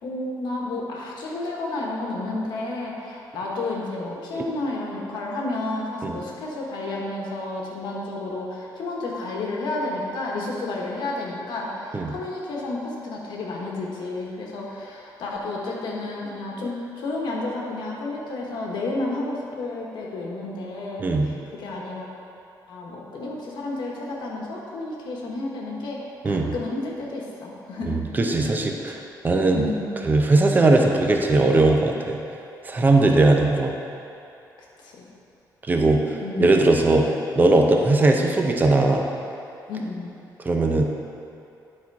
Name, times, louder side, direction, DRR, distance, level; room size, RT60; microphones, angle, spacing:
voice 1, 0.0-22.1 22.7-28.0 29.5-30.0 32.9-33.4 34.8-35.0 36.2-36.6 39.7-40.1, left 2 dB, 90° left, -2 dB, 1.4 m, -31 dB
voice 2, 27.9-29.0 29.2-29.6 30.0-32.2 32.6-33.7 35.7-36.0 36.4-37.1 37.4-39.0 40.4-40.8, right 2 dB, 25° right, 2 dB, 0.6 m, -19 dB
10.5 x 4.4 x 4.7 m, 2.7 s
cardioid pair, 160°, 8 cm